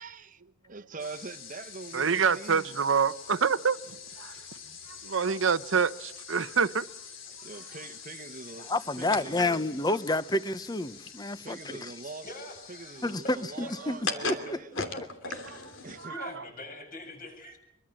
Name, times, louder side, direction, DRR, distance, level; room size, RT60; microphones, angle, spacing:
voice 1, 0.0-0.4 0.7-2.7 7.4-8.7 9.0-9.7 11.4-12.3 12.7-14.7 15.3-15.4 15.8-16.1, right 3 dB, 40° right, 1.0 m, -43 dB
sound 1, 1.0-16.4, left 4 dB, 85° left, 3.0 m, -42 dB
voice 2, 1.9-4.4 5.0-6.9 16.0-16.4, right 6 dB, 85° right, 0.9 m, -27 dB
voice 3, 8.7-11.9 13.0-13.2 13.6-14.0 14.2-14.4, left 2 dB, 20° left, 0.9 m, -29 dB
voice 4, 12.2-13.7 14.1-14.5 14.9-15.6 16.1-17.6, left 1 dB, 45° left, 7.5 m, -44 dB
24.5 x 23.5 x 7.6 m
head